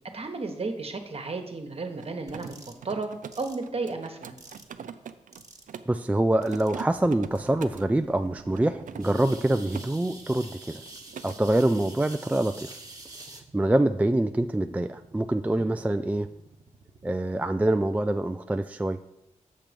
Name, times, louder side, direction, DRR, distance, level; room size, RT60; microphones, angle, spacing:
voice 1, 0.1-2.5 2.8-3.1 3.4-4.3 15.5-15.7, right 3 dB, 50° right, 6 dB, 1.3 m, -33 dB
Mechanisms, 1.9-6.0 6.4-7.9 8.5-9.9 10.2-10.5 10.8-11.4, right 8 dB, 80° right, 0.5 m, -43 dB
sound 1, 2.3-2.8 3.3-3.6 4.4-4.7 5.3-5.7 6.4-6.8 7.4-7.5 9.0-13.4, right 2 dB, 25° right, 1.3 m, -46 dB
voice 2, 5.9-10.8 11.2-12.7 13.5-16.3 17.0-19.0, right 1 dB, 10° right, 8 dB, 0.3 m, -25 dB
sound 2, 6.1-17.9, right 4 dB, 65° right, 0.9 m, -51 dB
7.5 x 6.0 x 5.2 m, 0.85 s
cardioid pair, 65°, 13 cm